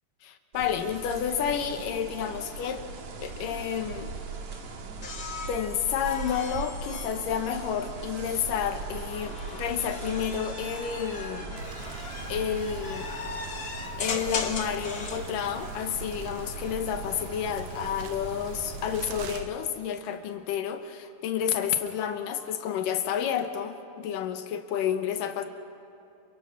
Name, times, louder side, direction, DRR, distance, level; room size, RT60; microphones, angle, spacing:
voice 1, 0.2-2.8 3.2-4.1 5.5-11.6 12.3-13.1 14.0-25.4, left 8 dB, 80° left, 8 dB, 2.8 m, -30 dB
sound 1, 0.5-19.5, right 4 dB, 60° right, 3.0 m, -40 dB
sound 2, 5.0-8.3 9.1-15.3 16.8-17.3, left 4 dB, 45° left, 1.2 m, -39 dB
sound 3, 11.6-19.4, right 6 dB, 85° right, 2.9 m, -43 dB
28.5 x 23.5 x 6.0 m, 2.9 s
omnidirectional pair, 3.8 m